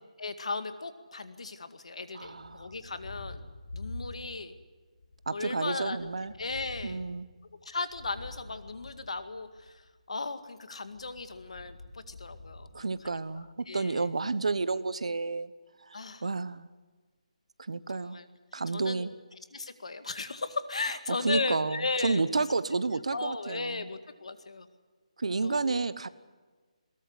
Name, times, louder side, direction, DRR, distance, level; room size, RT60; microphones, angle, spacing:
voice 1, 0.2-3.4 3.7-4.6 5.3-6.1 6.4-7.1 7.6-9.8 10.1-14.1 15.9-16.3 17.9-18.3 18.7-19.1 19.5-22.2 23.1-24.7 25.4-25.8, left 3 dB, 55° left, 10 dB, 2.0 m, -36 dB
voice 2, 2.1-2.7 5.3-6.3 6.8-7.3 12.7-15.5 15.9-16.7 17.6-18.2 18.5-19.1 21.2-23.9 25.2-26.1, right 3 dB, 60° right, 16 dB, 1.1 m, -31 dB
Thunder, 2.2-4.6 4.9-9.8 10.8-13.5, left 2 dB, 75° left, 5.5 m, -47 dB
21.5 x 19.0 x 9.7 m, 1.4 s
hypercardioid pair, 180°, 4 cm